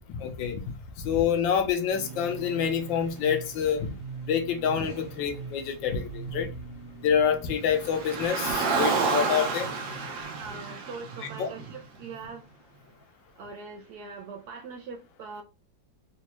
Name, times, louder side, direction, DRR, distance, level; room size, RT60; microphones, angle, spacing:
voice 1, 0.2-0.6 1.0-3.9 4.3-6.5 7.0-9.7 11.4-11.5, left 7 dB, 80° left, 1.4 m, -27 dB
sound 1, 1.9-8.3, right 4 dB, 25° right, 0.5 m, -42 dB
Car, 7.7-12.1, right 4 dB, 85° right, 1.6 m, -30 dB
voice 2, 10.4-12.7 13.4-15.4, right 4 dB, 70° right, 1.0 m, -42 dB
4.1 x 2.3 x 2.9 m
omnidirectional pair, 2.1 m